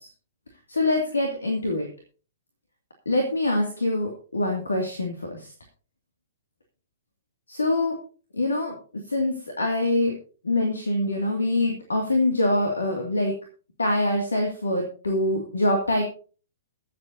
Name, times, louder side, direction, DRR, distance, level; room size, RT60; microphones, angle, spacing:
voice 1, 0.7-1.9 3.1-5.3 7.5-7.9 8.3-8.7 9.1-10.1 10.4-13.3 13.8-16.0, left 2 dB, 70° left, 2 dB, 2.3 m, -24 dB
22.5 x 7.9 x 2.8 m, 0.39 s
figure-of-eight pair, 115°, 0 cm